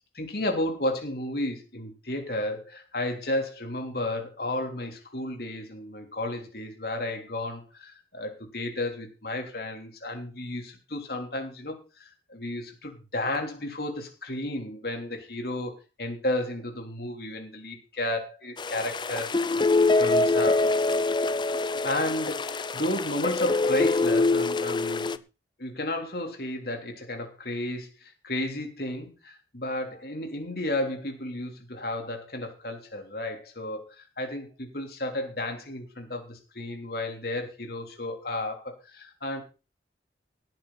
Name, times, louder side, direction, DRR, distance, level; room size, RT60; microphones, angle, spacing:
voice 1, 0.1-20.7 21.8-25.2 25.6-39.4, left 1 dB, 55° left, 4 dB, 3.6 m, -33 dB
sound 1, 18.6-25.2, left 3 dB, 25° left, 0.5 m, -24 dB
18.0 x 9.1 x 4.2 m, 0.32 s
head